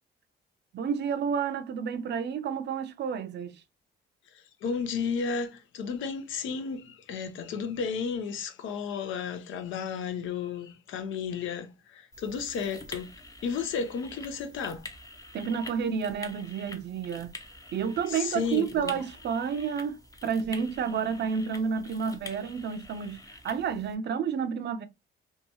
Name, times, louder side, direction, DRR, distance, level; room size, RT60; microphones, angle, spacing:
voice 1, 0.7-3.6 15.3-17.4 17.7-24.9, right 7 dB, 60° right, 0.5 m, -30 dB
voice 2, 4.3-13.1 13.4-14.8 18.1-18.9, left 6 dB, 80° left, 0.6 m, -33 dB
sound 1, 12.1-24.0, left 2 dB, 15° left, 0.6 m, -46 dB
2.8 x 2.2 x 2.7 m
cardioid pair, 90°, 20 cm